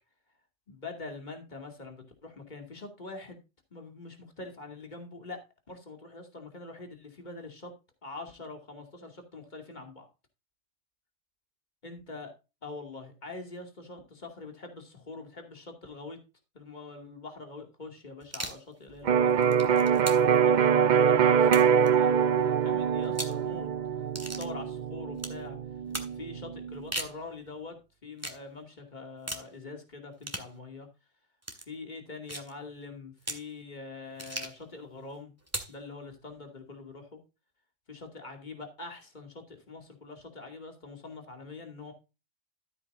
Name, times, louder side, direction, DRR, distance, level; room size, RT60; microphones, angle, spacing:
voice 1, 0.7-3.4 3.7-5.4 5.7-7.7 8.0-10.1 11.8-12.3 12.6-16.2 16.5-19.8 20.3-23.7 24.2-25.6 26.1-30.9 31.5-35.3 35.7-37.2 37.9-41.9, left 3 dB, 35° left, 3 dB, 2.6 m, -44 dB
sound 1, 18.2-18.6 19.3-20.4 21.4-21.9 23.0-23.4 24.1-24.5 25.2-25.4 25.9-26.1 26.7-27.2 28.2-28.4 29.3-29.5 30.2-30.5 31.4-31.6 32.3-32.5 33.2-33.5 34.2-34.6 35.5-35.8, right 1 dB, 10° right, 1.8 m, -37 dB
Electric guitar, 19.1-26.8, right 7 dB, 50° right, 0.6 m, -24 dB
13.5 x 8.4 x 2.6 m, 0.29 s
omnidirectional pair, 1.3 m